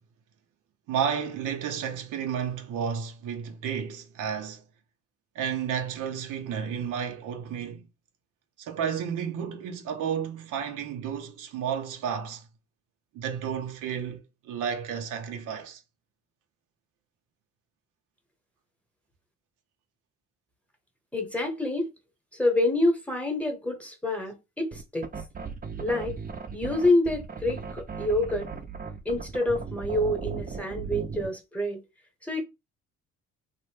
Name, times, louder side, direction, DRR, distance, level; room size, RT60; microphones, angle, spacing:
voice 1, 0.9-4.6 5.3-7.9 8.6-12.4 13.1-15.8, right 7 dB, 85° right, 0.7 m, -32 dB
voice 2, 21.1-21.9 22.3-25.1 25.8-26.2 26.5-28.5 29.0-31.8 32.2-32.4, left 1 dB, 5° left, 0.9 m, -27 dB
sound 1, 24.7-31.3, right 5 dB, 30° right, 0.5 m, -37 dB
2.6 x 2.1 x 3.2 m
cardioid pair, 90°, 30 cm